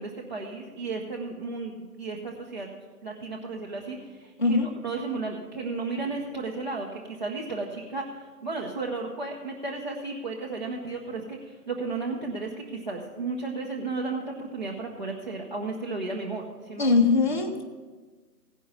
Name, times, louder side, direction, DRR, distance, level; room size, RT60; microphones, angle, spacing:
voice 1, 0.0-2.7 3.0-17.0, right 3 dB, 30° right, -4 dB, 0.8 m, -34 dB
voice 2, 16.8-17.6, left 4 dB, 30° left, 3 dB, 0.7 m, -21 dB
16.0 x 5.4 x 6.9 m, 1.4 s
figure-of-eight pair, 160°, 48 cm